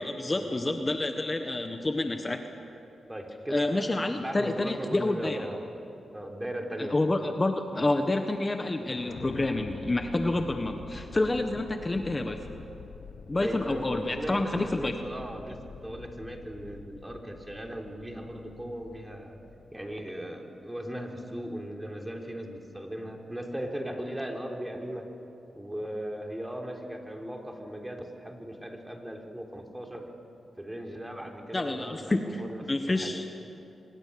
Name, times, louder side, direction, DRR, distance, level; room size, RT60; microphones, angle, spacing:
voice 1, 0.0-2.4 3.5-5.4 6.8-12.4 13.3-14.9 31.5-32.4 32.7-33.3, left 2 dB, 30° left, 6 dB, 1.4 m, -28 dB
voice 2, 3.1-3.9 4.1-5.6 6.0-7.0 13.4-19.4 19.7-25.1 25.6-30.1 30.6-33.2, equal, 10° right, 2 dB, 3.6 m, -38 dB
sound 1, 8.9-20.0, left 6 dB, 75° left, 1.0 m, -46 dB
25.0 x 21.5 x 7.1 m, 2.9 s
cardioid pair, 55°, 0 cm